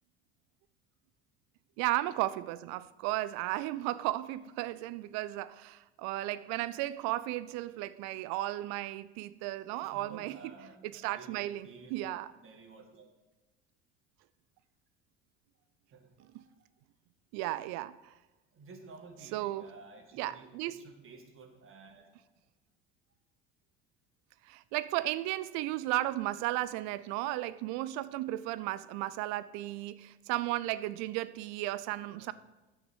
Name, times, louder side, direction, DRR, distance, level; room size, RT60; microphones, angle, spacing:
voice 1, 1.8-10.4 10.8-12.3 17.3-18.1 19.3-19.7 20.1-20.9 24.4-32.3, right 16 dB, 55° right, 0.5 m, -34 dB
voice 2, 9.8-13.1 15.9-16.7 18.5-22.1 25.8-25.9 32.1-32.3, right 4 dB, 40° right, 1.9 m, -53 dB
9.7 x 7.8 x 4.7 m
hypercardioid pair, 65°, 32 cm